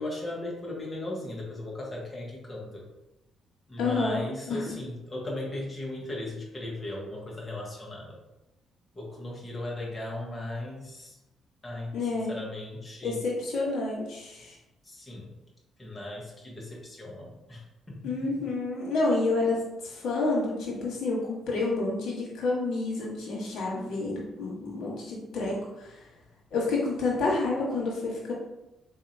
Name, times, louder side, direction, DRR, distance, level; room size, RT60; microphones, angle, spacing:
voice 1, 0.0-2.8 3.7-8.2 8.9-11.2 11.6-11.9 12.3-13.2 14.8-15.3 15.8-18.2, left 1 dB, 25° left, -3 dB, 1.1 m, -37 dB
voice 2, 3.8-4.2 4.5-4.7 11.9-12.3 13.0-14.6 18.0-26.0 26.5-28.3, left 3 dB, 75° left, -4 dB, 1.3 m, -29 dB
3.9 x 2.8 x 2.6 m, 0.95 s
cardioid pair, 90°, 0 cm